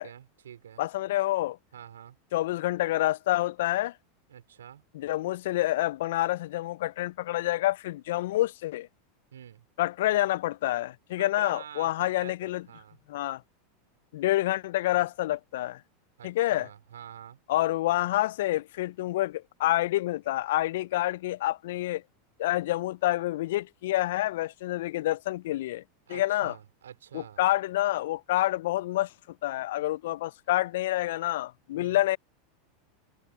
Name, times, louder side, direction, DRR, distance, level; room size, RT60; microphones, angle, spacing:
voice 1, 0.0-0.8 1.7-2.2 4.3-4.8 9.3-9.6 11.2-13.0 16.2-17.4 26.1-27.4 31.7-32.0, right 9 dB, 75° right, 4.7 m, -47 dB
voice 2, 0.8-1.6 2.3-3.9 4.9-8.9 9.8-12.6 13.1-13.4 14.1-15.8 16.2-16.7 17.5-22.0 22.4-25.8 26.1-26.5 27.1-29.1 29.4-32.2, left 16 dB, 65° left, 0.6 m, -28 dB
hypercardioid pair, 85°, 0 cm